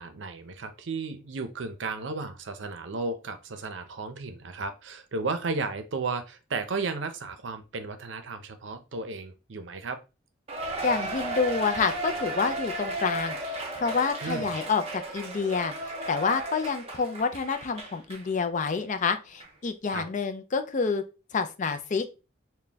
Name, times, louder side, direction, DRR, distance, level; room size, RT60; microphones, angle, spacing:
voice 1, 0.0-10.0 14.2-14.5 19.9-20.0, right 3 dB, 70° right, 9 dB, 0.6 m, -34 dB
Cheering, 10.5-18.3 18.7-18.8 19.4-19.5, right 2 dB, 30° right, 0.6 m, -35 dB
voice 2, 10.8-21.0 21.3-22.2, left 5 dB, 40° left, 8 dB, 0.4 m, -28 dB
4.0 x 2.2 x 3.4 m, 0.30 s
head